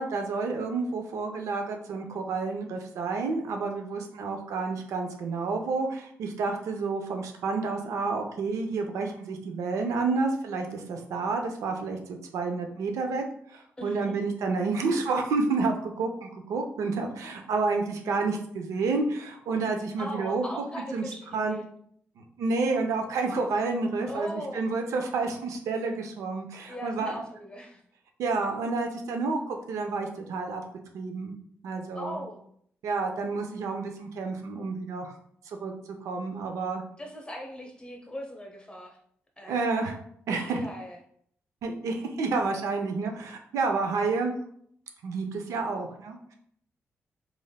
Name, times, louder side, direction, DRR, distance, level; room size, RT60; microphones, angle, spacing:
voice 1, 0.0-13.2 13.5-20.6 20.9-21.0 21.3-21.6 22.2-27.1 28.2-30.6 30.9-31.4 31.6-32.2 32.8-35.1 35.5-35.7 36.0-36.8 39.5-40.0 40.3-40.6 41.6-44.3 45.0-46.3, right 4 dB, 80° right, 4 dB, 0.4 m, -30 dB
voice 2, 13.8-14.1 20.0-21.7 24.1-24.7 26.7-27.8 32.0-32.4 37.0-39.0 39.4-39.7 40.3-41.0, equal, 20° left, 1 dB, 0.9 m, -39 dB
3.2 x 2.5 x 2.3 m, 0.65 s
supercardioid pair, 50°, 5 cm